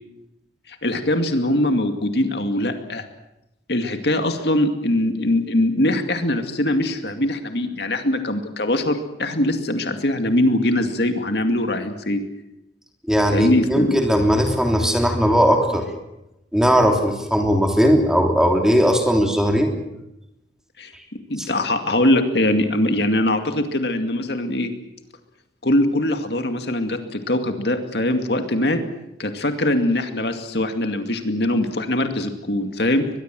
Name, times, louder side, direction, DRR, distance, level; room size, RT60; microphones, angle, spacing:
voice 1, 0.7-3.0 3.7-12.2 13.3-14.0 20.8-20.9 21.3-24.7 25.6-28.8 29.2-33.1, left 1 dB, 65° left, 6 dB, 2.3 m, -22 dB
voice 2, 13.1-15.9 16.5-19.7 21.4-21.5, equal, 5° right, 3 dB, 3.3 m, -18 dB
23.0 x 21.5 x 7.7 m, 0.89 s
head